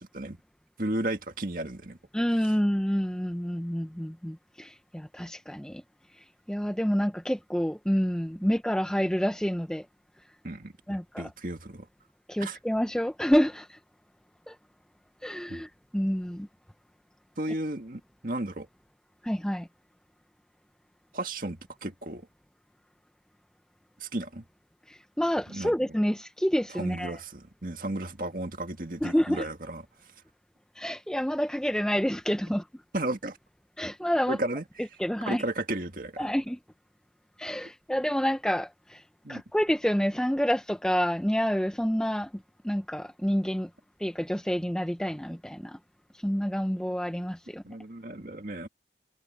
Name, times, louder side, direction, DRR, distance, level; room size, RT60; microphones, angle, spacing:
voice 1, 0.8-2.0 10.4-11.9 12.4-12.6 15.5-15.6 17.4-18.7 21.1-22.2 24.0-24.4 25.5-25.7 26.7-29.8 32.9-33.4 34.3-34.6 35.3-36.3 39.2-39.4 47.6-48.7, right 1 dB, 50° right, 2.1 m, -34 dB
voice 2, 2.1-5.8 6.5-9.9 10.9-11.3 12.3-13.8 14.5-14.6 15.2-16.5 19.2-19.7 24.9-27.2 29.0-29.5 30.8-32.7 33.8-34.4 35.0-35.4 36.2-36.6 37.4-39.0 39.3-42.3 42.6-43.7 44.0-45.8 46.2-47.6, equal, 5° left, 0.5 m, -28 dB
head